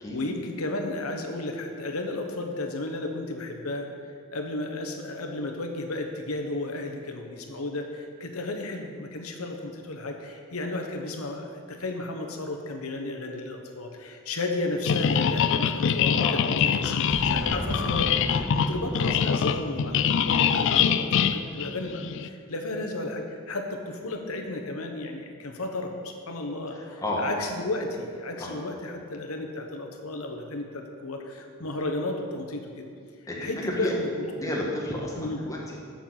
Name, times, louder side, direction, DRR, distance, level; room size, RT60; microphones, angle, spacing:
voice 1, 0.0-3.9 4.3-32.8 33.4-34.2 35.2-35.4, left 2 dB, 90° left, 3 dB, 1.1 m, -33 dB
sound 1, 14.8-22.3, left 7 dB, 60° left, 0.4 m, -24 dB
Boom, 17.1-21.8, equal, ahead, 2.0 m, -36 dB
voice 2, 26.7-27.3 28.4-28.5 31.6-31.7 33.3-33.9 34.4-35.8, left 1 dB, 15° left, -3 dB, 1.4 m, -32 dB
7.2 x 6.0 x 7.3 m, 2.2 s
head